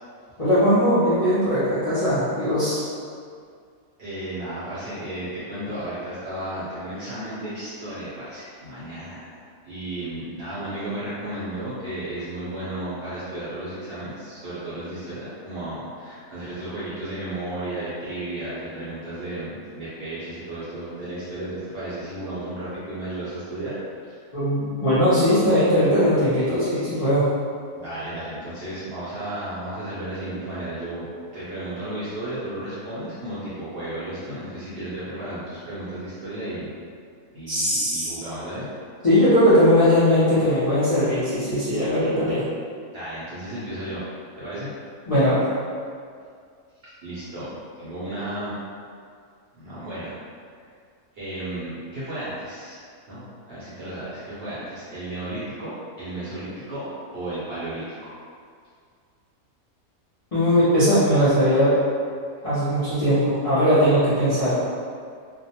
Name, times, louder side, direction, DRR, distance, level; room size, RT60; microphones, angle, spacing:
voice 1, 0.4-2.9 24.3-27.2 37.5-38.1 39.0-42.4 45.1-45.5 60.3-61.7 62.4-64.6, equal, 50° left, -13 dB, 0.4 m, -19 dB
voice 2, 4.0-23.7 24.1-24.2 27.7-36.7 37.3-38.7 42.9-44.1 44.4-44.7 47.0-48.6 49.6-50.1 51.1-52.8 53.1-55.7 56.0-56.9 57.1-58.1, right 1 dB, 60° right, -11 dB, 0.7 m, -33 dB
2.4 x 2.1 x 2.7 m, 2.2 s
omnidirectional pair, 1.5 m